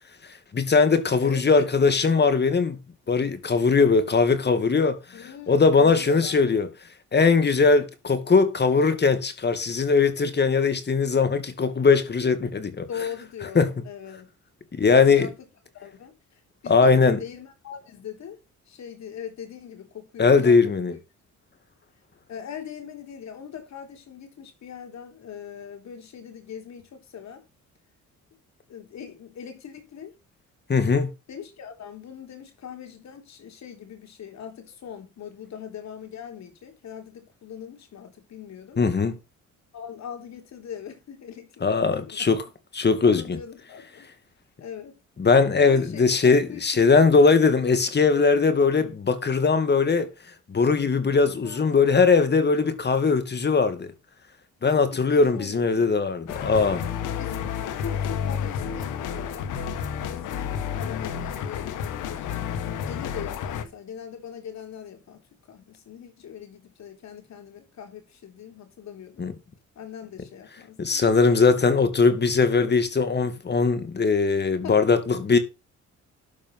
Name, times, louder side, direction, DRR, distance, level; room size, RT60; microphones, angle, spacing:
voice 1, 0.5-2.8 3.1-6.7 7.1-12.9 13.6-13.7 14.7-15.3 16.7-17.2 20.2-20.9 30.7-31.1 38.8-39.2 41.6-42.4 42.7-43.4 45.2-50.1 50.5-53.9 54.6-56.8 69.2-69.3 70.8-75.4, left 4 dB, 35° left, 2.3 m, -20 dB
voice 2, 1.2-1.7 5.1-6.3 12.9-14.3 14.9-15.4 15.7-18.4 18.7-21.0 22.3-27.4 28.7-30.1 31.3-38.8 39.7-42.3 43.0-44.1 44.6-44.9 45.6-47.2 51.4-51.9 54.6-56.0 57.2-57.4 57.8-60.5 60.7-62.5 62.8-65.2 65.5-69.3 69.8-71.8 74.6-74.9, left 8 dB, 65° left, 3.7 m, -41 dB
sound 1, 56.3-63.6, left 8 dB, 85° left, 1.7 m, -30 dB
12.5 x 5.2 x 5.5 m
cardioid pair, 90°, 30 cm